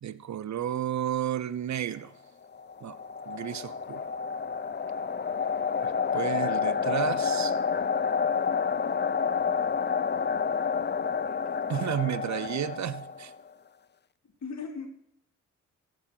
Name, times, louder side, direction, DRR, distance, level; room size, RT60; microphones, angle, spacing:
voice 1, 0.0-2.1 2.8-3.0 3.3-4.0 5.8-7.5 11.7-13.3, right 10 dB, 55° right, 0.9 m, -32 dB
sound 1, 2.5-13.4, left 6 dB, 30° left, 0.8 m, -29 dB
voice 2, 11.2-12.1 14.2-14.9, left 5 dB, 55° left, 2.9 m, -41 dB
15.0 x 9.4 x 4.6 m
hypercardioid pair, 45°, 34 cm